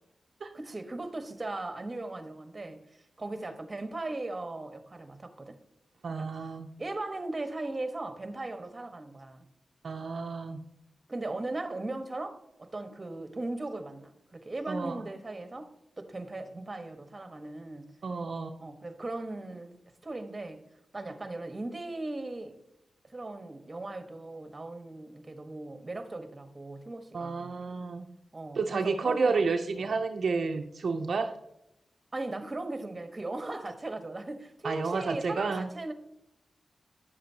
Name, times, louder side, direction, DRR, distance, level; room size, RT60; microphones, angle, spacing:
voice 1, 0.5-2.8 3.2-5.6 6.1-6.3 6.8-9.5 11.1-17.9 18.6-19.7 20.0-20.6 20.9-22.6 23.1-27.6 28.3-29.9 32.1-35.9, right 2 dB, 35° right, 1.3 m, -38 dB
voice 2, 6.0-6.7 9.8-10.6 14.7-15.0 18.0-18.5 27.1-28.1 28.6-31.3 34.6-35.7, right 4 dB, 70° right, 0.5 m, -30 dB
9.9 x 7.6 x 2.8 m
cardioid pair, 50°, 0 cm